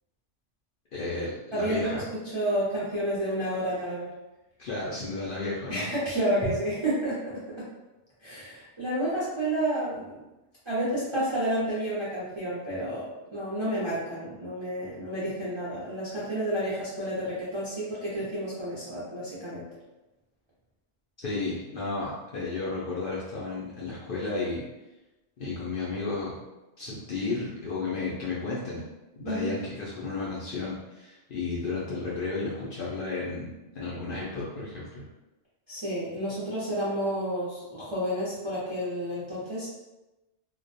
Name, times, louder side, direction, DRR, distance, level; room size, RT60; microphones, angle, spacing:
voice 1, 0.9-2.0 4.6-5.9 21.2-24.6 25.4-26.4 26.8-28.8 29.2-35.0, left 3 dB, 60° left, -7 dB, 0.5 m, -33 dB
voice 2, 1.5-4.1 5.7-7.7 8.2-10.2 10.7-19.7 29.2-29.5 35.7-39.7, right 1 dB, 40° right, -9 dB, 0.4 m, -30 dB
2.3 x 2.1 x 2.6 m, 1.0 s
omnidirectional pair, 1.3 m